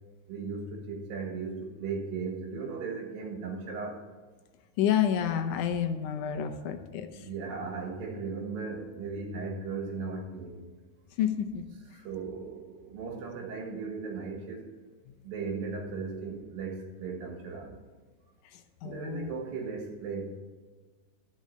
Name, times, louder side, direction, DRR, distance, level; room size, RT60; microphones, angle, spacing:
voice 1, 0.3-4.0 7.0-10.6 11.9-14.6 15.2-17.8 18.8-20.4, right 4 dB, 90° right, 2 dB, 3.4 m, -37 dB
voice 2, 4.8-7.2 11.2-11.6 18.8-19.3, left 9 dB, 75° left, 6 dB, 2.1 m, -29 dB
11.5 x 6.3 x 5.5 m, 1.4 s
omnidirectional pair, 3.9 m